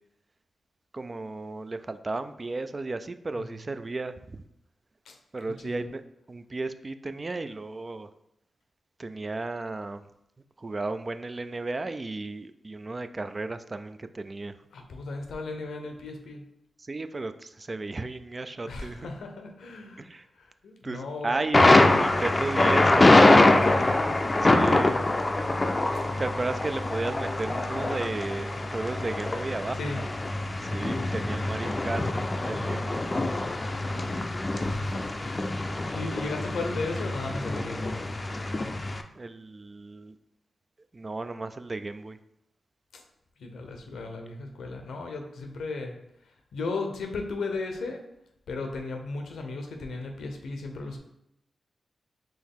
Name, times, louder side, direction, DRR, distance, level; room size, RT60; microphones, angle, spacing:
voice 1, 0.9-4.4 5.3-6.0 6.3-8.1 9.0-10.1 10.6-14.5 16.8-19.1 20.0-20.3 20.8-23.5 24.4-25.0 25.9-29.8 30.6-32.1 32.4-33.0 39.1-40.2 40.9-42.2, right 3 dB, 40° right, 11 dB, 0.3 m, -34 dB
voice 2, 14.7-16.4 18.7-21.4 23.6-24.0 29.8-30.0 33.5-38.0 42.9-43.0 43.4-46.0 46.2-48.0 48.5-51.0, left 3 dB, 85° left, 4 dB, 0.7 m, -36 dB
Thunder, 21.5-39.0, left 2 dB, 35° left, 0.4 m, -24 dB
4.6 x 3.1 x 3.6 m, 0.80 s
cardioid pair, 50°, 0 cm